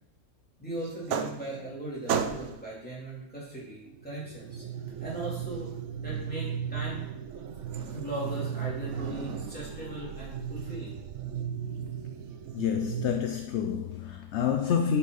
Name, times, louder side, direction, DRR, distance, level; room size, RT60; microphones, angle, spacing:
voice 1, 0.6-4.6 5.0-5.7 6.0-7.0 7.7-11.0, right 2 dB, 5° left, 3.3 m, -38 dB
sound 1, 0.8-1.8 2.1-2.7 3.9-13.2, right 7 dB, 65° right, 0.9 m, -35 dB
voice 2, 12.5-15.0, left 7 dB, 65° left, 0.7 m, -28 dB
10.5 x 5.7 x 4.1 m
omnidirectional pair, 1.5 m